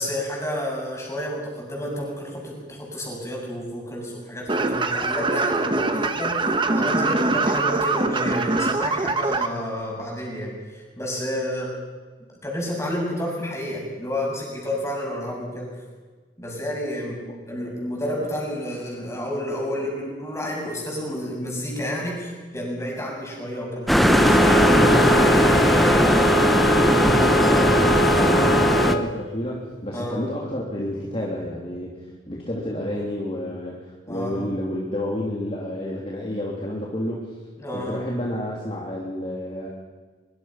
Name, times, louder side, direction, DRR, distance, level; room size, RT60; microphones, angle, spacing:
voice 1, 0.0-11.7 12.4-15.7 16.4-26.0 29.9-30.2 34.1-34.5 37.6-38.0, equal, 15° left, -2 dB, 7.3 m, -30 dB
sound 1, 4.5-9.5, right 3 dB, 25° right, 1.2 m, -23 dB
Bowed string instrument, 23.9-29.1, equal, 60° left, 1.4 m, -22 dB
sound 2, 23.9-29.0, equal, ahead, 1.2 m, -18 dB
voice 2, 27.1-32.0 32.3-37.3 37.7-39.7, left 1 dB, 30° left, -3 dB, 3.2 m, -30 dB
24.0 x 23.5 x 5.9 m, 1.4 s
head